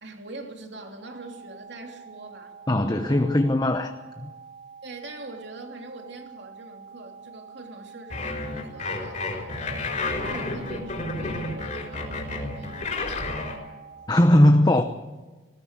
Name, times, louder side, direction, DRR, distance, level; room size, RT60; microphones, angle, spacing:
voice 1, 0.0-2.6 4.8-9.9 10.2-13.1, right 2 dB, 60° right, 3.0 m, -43 dB
sound 1, 1.0-14.1, right 6 dB, 80° right, 3.2 m, -46 dB
voice 2, 2.7-3.9 4.2-4.3 14.1-14.8, left 1 dB, 20° left, 0.8 m, -19 dB
sound 2, 8.1-13.6, left 2 dB, 35° left, 4.2 m, -31 dB
19.5 x 18.0 x 8.2 m
head